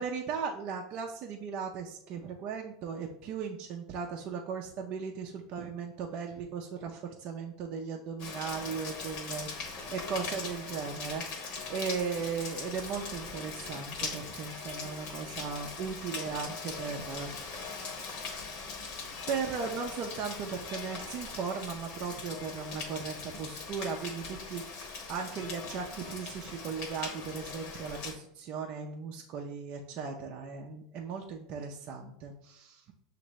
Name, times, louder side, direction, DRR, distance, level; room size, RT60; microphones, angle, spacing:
voice 1, 0.0-17.8 19.3-32.8, right 6 dB, 50° right, 0 dB, 0.5 m, -37 dB
Rain, 8.2-28.1, left 4 dB, 55° left, 1.0 m, -41 dB
6.2 x 2.5 x 3.0 m, 0.76 s
hypercardioid pair, 105°, 2 cm